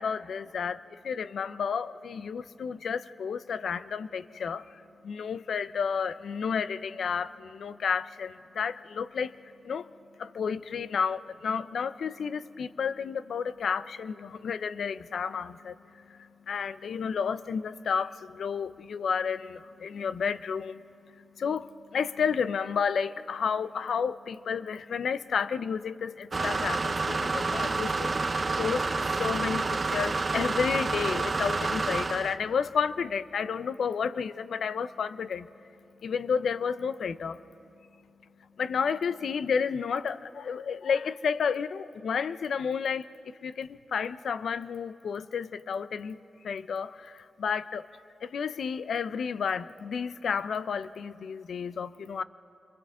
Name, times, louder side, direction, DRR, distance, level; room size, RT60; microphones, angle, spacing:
voice 1, 0.0-9.3 9.6-9.9 10.2-20.8 21.4-35.5 36.0-37.4 38.6-43.0 43.4-46.2 46.4-47.9 48.2-52.2, left 6 dB, 80° left, 0.5 m, -31 dB
sound 1, 26.3-32.4, right 3 dB, 35° right, 0.6 m, -29 dB
28.0 x 26.0 x 3.6 m
wide cardioid pair, 100°, 0 cm